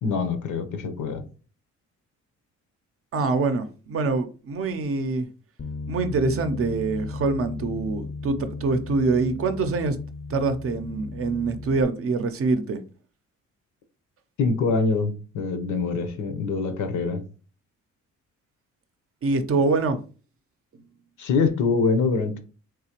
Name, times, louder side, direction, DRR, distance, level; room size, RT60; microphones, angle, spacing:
voice 1, 0.0-1.2 14.4-17.2 21.2-22.4, left 4 dB, 75° left, 0.8 m, -24 dB
voice 2, 3.1-5.3 5.9-10.0 10.3-12.8 19.2-20.0, right 3 dB, 50° right, 0.6 m, -25 dB
Bass guitar, 5.6-11.8, left 3 dB, 30° left, 0.5 m, -35 dB
3.7 x 2.8 x 2.9 m
cardioid pair, 90°, 30 cm